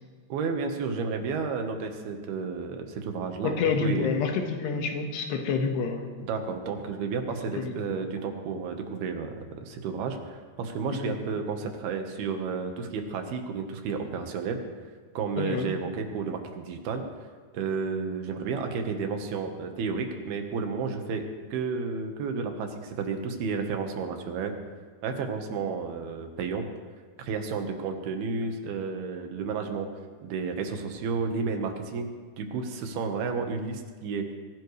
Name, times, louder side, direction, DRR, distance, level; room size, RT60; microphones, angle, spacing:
voice 1, 0.3-4.1 6.2-14.6 15.1-17.0 17.5-24.5 25.0-26.7 27.2-29.9 30.2-32.1 32.4-34.3, right 5 dB, 75° right, 5 dB, 3.1 m, -32 dB
voice 2, 3.4-6.1 7.6-7.8 11.0-11.2 15.4-15.7, left 5 dB, 90° left, 3 dB, 3.6 m, -28 dB
23.0 x 16.0 x 3.2 m, 1.5 s
omnidirectional pair, 4.7 m